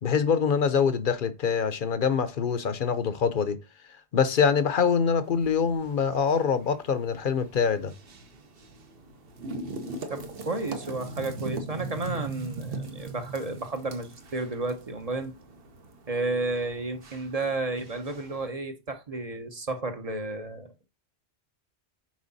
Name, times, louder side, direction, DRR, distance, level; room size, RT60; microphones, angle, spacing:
voice 1, 0.0-3.6 4.1-7.9, left 6 dB, 55° left, 0.8 m, -24 dB
sound 1, 5.2-18.5, right 3 dB, 60° right, 1.2 m, -41 dB
voice 2, 10.1-15.3 16.1-20.8, right 2 dB, 35° right, 0.9 m, -32 dB
6.3 x 4.7 x 4.0 m
omnidirectional pair, 1.1 m